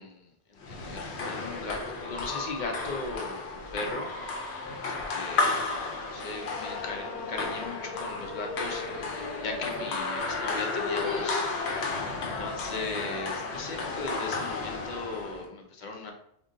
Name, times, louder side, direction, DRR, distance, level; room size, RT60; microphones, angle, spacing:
voice 1, 0.0-4.1 4.6-5.6 6.0-9.0 9.4-11.5 12.1-16.1, left 3 dB, 55° left, 2 dB, 0.6 m, -38 dB
sound 1, 0.6-15.5, left 3 dB, 75° left, 0.9 m, -33 dB
2.5 x 2.2 x 3.6 m, 0.72 s
omnidirectional pair, 1.1 m